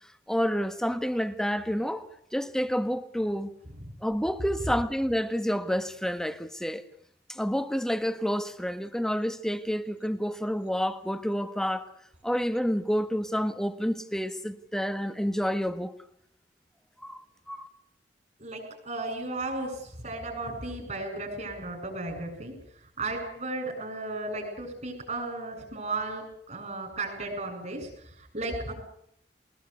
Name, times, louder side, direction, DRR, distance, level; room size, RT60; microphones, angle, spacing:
voice 1, 0.3-3.5 4.0-6.8 7.3-11.9 12.2-15.9 17.0-17.2 17.5-17.7, equal, 5° left, 1.6 m, -29 dB
voice 2, 18.4-22.5 23.0-27.9 28.2-28.7, right 2 dB, 40° right, 7.7 m, -34 dB
22.0 x 21.0 x 8.4 m
head